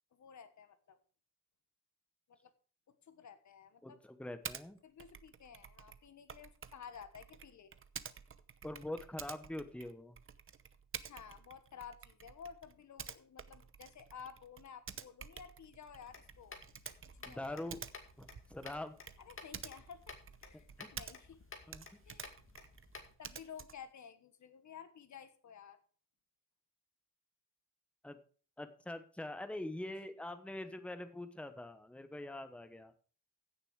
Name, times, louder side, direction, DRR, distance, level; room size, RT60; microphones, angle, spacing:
voice 1, 0.1-1.0 2.3-2.5 2.9-4.0 4.8-7.7 11.0-16.6 17.0-17.6 19.2-20.1 20.4-20.7 20.9-21.8 22.1-22.3 23.2-25.8, left 7 dB, 65° left, 11 dB, 1.4 m, -53 dB
voice 2, 3.8-4.8 8.6-10.1 17.3-17.8 18.2-19.0 20.5-20.9 21.7-22.0 28.0-28.2 28.6-32.9, left 1 dB, 5° left, 9 dB, 1.1 m, -44 dB
Typing, 4.4-4.7 5.0-21.4 21.7-23.9, right 7 dB, 40° right, 0.8 m, -50 dB
sound 1, 16.0-23.1, left 4 dB, 40° left, 2.4 m, -54 dB
15.5 x 6.9 x 4.8 m, 0.41 s
cardioid pair, 110°, 32 cm